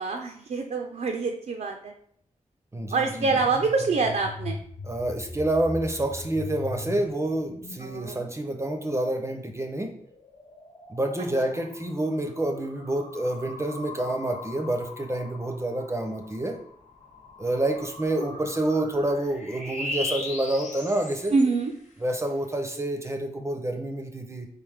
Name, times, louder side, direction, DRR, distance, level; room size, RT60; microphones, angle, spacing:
voice 1, 0.0-1.9 2.9-4.6 7.8-8.2 21.3-21.7, right 4 dB, 65° right, 3 dB, 0.5 m, -25 dB
voice 2, 2.7-3.4 4.8-9.9 10.9-16.6 17.4-21.3 22.0-24.5, right 1 dB, 20° right, 4 dB, 0.6 m, -28 dB
sound 1, 3.2-9.2 9.8-21.8, left 2 dB, 70° left, 1.1 m, -40 dB
4.1 x 3.2 x 3.4 m, 0.64 s
cardioid pair, 70°, 13 cm